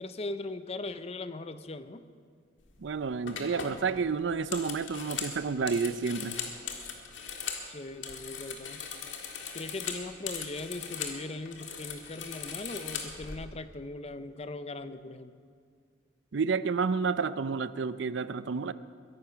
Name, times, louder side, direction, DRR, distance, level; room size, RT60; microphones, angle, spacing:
voice 1, 0.0-2.0 7.6-8.8 9.5-15.3, left 2 dB, 30° left, 12 dB, 0.6 m, -39 dB
sound 1, 2.6-2.9 3.3-7.7 7.9-11.2 11.5-13.4, left 6 dB, 70° left, 1.8 m, -39 dB
voice 2, 2.8-6.4 16.3-18.7, right 5 dB, 65° right, 15 dB, 0.5 m, -30 dB
22.0 x 11.0 x 5.8 m, 2.1 s
head